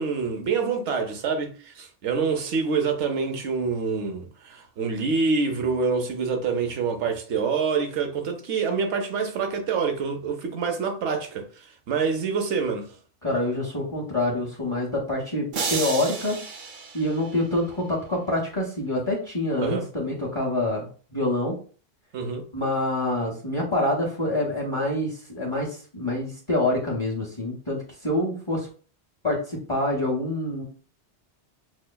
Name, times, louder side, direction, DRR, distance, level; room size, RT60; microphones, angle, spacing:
voice 1, 0.0-11.5 11.9-12.9 19.6-19.9 22.1-22.5, right 5 dB, 85° right, 1.0 m, -26 dB
voice 2, 13.2-16.4 16.9-21.6 22.5-28.7 29.2-30.6, left 1 dB, 30° left, 0.9 m, -26 dB
sound 1, 15.5-17.8, right 4 dB, 55° right, 0.7 m, -32 dB
6.1 x 2.1 x 2.2 m
omnidirectional pair, 1.2 m